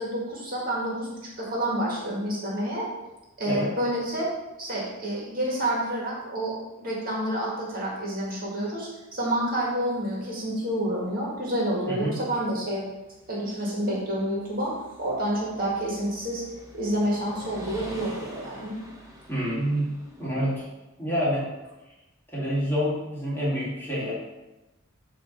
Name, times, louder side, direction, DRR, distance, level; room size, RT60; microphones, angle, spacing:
voice 1, 0.0-2.9 3.4-4.3 4.6-12.8 13.3-14.7 15.0-16.4 16.7-18.8, right 1 dB, 40° right, -4 dB, 1.8 m, -29 dB
sound 1, 9.2-20.6, equal, 15° right, 1.6 m, -47 dB
voice 2, 19.3-19.9 20.2-20.7 21.0-21.5 22.3-24.1, equal, 10° left, -9 dB, 2.0 m, -27 dB
7.9 x 3.0 x 5.7 m, 1.0 s
head